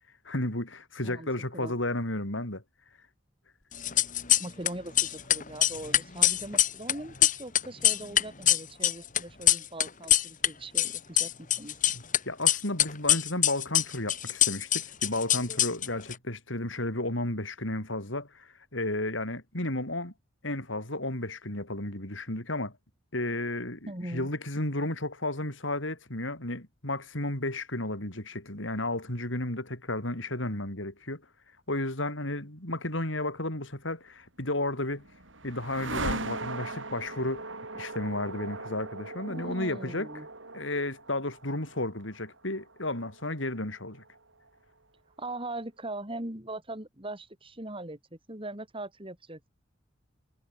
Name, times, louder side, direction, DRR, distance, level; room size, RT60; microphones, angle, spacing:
voice 1, 0.3-2.6 11.9-20.1 20.4-22.7 23.1-31.2 31.7-35.0 35.4-37.4 37.7-40.1 40.5-44.0, left 1 dB, 75° left, 5.9 m, -33 dB
sound 1, 3.7-4.7 4.9-10.5 10.7-12.2 12.5-16.1, left 11 dB, 40° left, 2.3 m, -24 dB
voice 2, 4.4-11.7 23.9-24.3 39.3-40.3 45.2-49.5, right 1 dB, 25° right, 4.1 m, -40 dB
sound 2, 34.4-44.5, right 2 dB, 75° right, 8.0 m, -40 dB
head